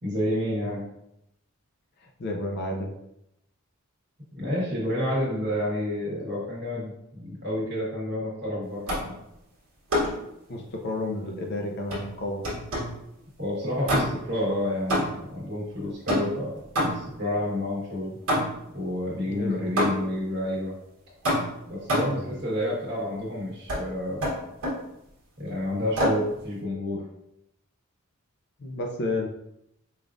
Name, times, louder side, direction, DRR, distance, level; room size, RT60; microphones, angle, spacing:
voice 1, 0.0-0.9 4.3-9.1 13.4-18.2 18.7-20.7 21.7-24.3 25.4-27.0, left 1 dB, 50° right, -6 dB, 1.4 m, -29 dB
voice 2, 2.0-3.0 10.5-12.4 19.2-19.7 22.0-22.3 28.6-29.3, left 2 dB, 50° left, 2 dB, 0.5 m, -31 dB
sound 1, 8.9-9.2 9.9-10.3 11.9-13.0 13.9-14.4 14.9-15.4 16.1-17.2 18.3-18.7 19.8-20.2 21.2-22.3 23.7-23.9 24.2-24.9 26.0-26.3, equal, 75° right, 1.2 m, -27 dB
5.0 x 2.4 x 2.5 m, 0.82 s
head